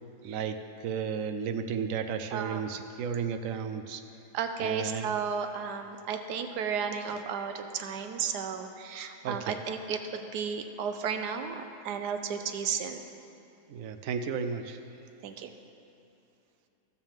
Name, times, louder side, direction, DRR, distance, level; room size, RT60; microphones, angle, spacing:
voice 1, 0.2-4.0 4.6-5.2 9.2-9.6 13.7-14.8, right 6 dB, 65° right, 8 dB, 0.9 m, -33 dB
voice 2, 2.3-2.6 4.3-13.1 15.2-15.5, right 6 dB, 85° right, 7 dB, 1.3 m, -33 dB
16.0 x 7.3 x 3.6 m, 2.8 s
omnidirectional pair, 1.7 m